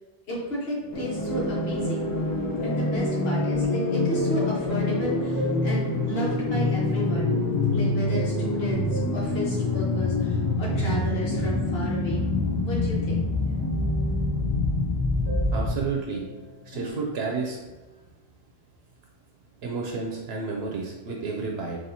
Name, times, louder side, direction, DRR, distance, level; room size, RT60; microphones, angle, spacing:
voice 1, 0.3-2.1 2.6-7.3 7.7-12.3 12.6-13.3, left 1 dB, 70° left, -5 dB, 1.3 m, -32 dB
sound 1, 0.8-16.9, left 2 dB, 25° right, 1.3 m, -39 dB
sound 2, 0.9-15.9, left 2 dB, 30° left, 0.4 m, -26 dB
voice 2, 15.5-16.2 16.7-17.6 19.6-21.8, right 4 dB, 75° right, 0 dB, 0.8 m, -31 dB
4.1 x 2.8 x 2.7 m, 1.2 s
omnidirectional pair, 1.1 m